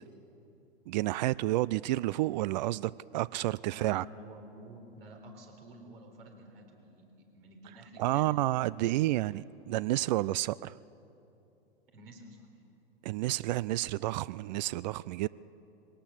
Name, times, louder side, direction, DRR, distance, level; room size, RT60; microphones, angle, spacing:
voice 1, 0.9-4.0 8.0-10.7 13.0-15.3, right 16 dB, 50° right, 21 dB, 0.4 m, -30 dB
voice 2, 3.7-8.3 8.8-9.4 11.9-12.5, right 1 dB, 70° right, 2 dB, 4.3 m, -51 dB
22.0 x 18.0 x 7.3 m, 2.9 s
hypercardioid pair, 105°, 30 cm